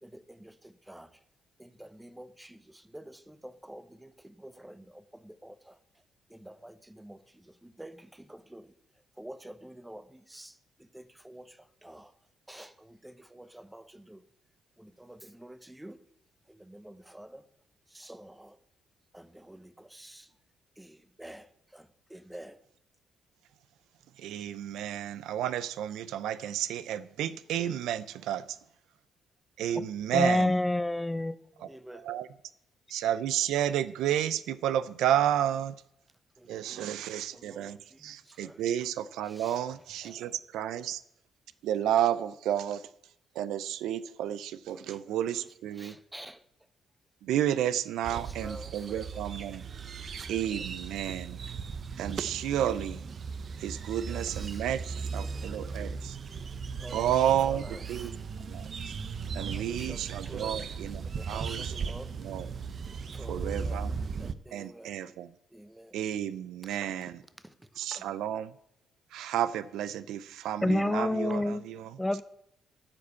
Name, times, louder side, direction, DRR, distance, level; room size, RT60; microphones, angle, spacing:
voice 1, 0.0-1.1 1.6-5.8 6.3-8.7 9.2-12.1 12.5-14.2 14.8-16.0 16.5-17.5 17.9-18.6 19.1-20.3 20.8-22.6 31.7-32.1 36.4-37.0 37.3-38.6 39.2-39.6 40.0-40.2 40.5-40.8 44.7-45.5 45.7-46.4 48.1-49.6 50.3-50.6 53.7-55.8 56.8-58.2 59.5-60.7 61.0-62.1 63.1-63.9 64.2-65.0 65.5-66.0 66.6-67.1 67.4-67.5 67.9-68.1, right 1 dB, 10° right, 0.9 m, -49 dB
voice 2, 24.2-28.4 29.6-30.5 31.6-31.7 32.0-32.3 32.9-35.7 36.5-41.0 41.6-42.8 43.4-45.9 47.2-49.6 50.3-51.4 52.0-53.0 53.6-54.8 55.1-56.2 56.9-58.1 58.4-58.7 59.3-61.9 62.2-62.5 63.3-63.9 64.5-65.3 65.9-67.1 67.8-68.5 69.1-71.9, right 11 dB, 85° right, 0.5 m, -31 dB
voice 3, 30.1-31.4 70.6-71.6 72.0-72.2, left 1 dB, 10° left, 0.5 m, -27 dB
sound 1, 48.0-64.3, right 5 dB, 50° right, 0.7 m, -37 dB
13.5 x 5.0 x 8.2 m
cardioid pair, 90°, 0 cm